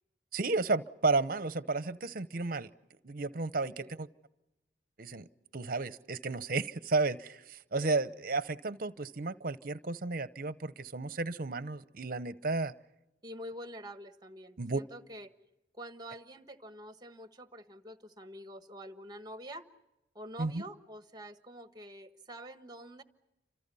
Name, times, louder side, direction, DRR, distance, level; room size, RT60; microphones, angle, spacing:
voice 1, 0.3-2.7 3.0-4.1 5.0-5.3 5.5-12.7 14.6-14.8 20.4-20.6, right 3 dB, 50° right, 15 dB, 0.8 m, -33 dB
voice 2, 13.2-15.3 15.7-19.6 20.1-23.0, equal, 25° right, 9 dB, 1.4 m, -46 dB
30.0 x 26.5 x 5.5 m, 0.94 s
head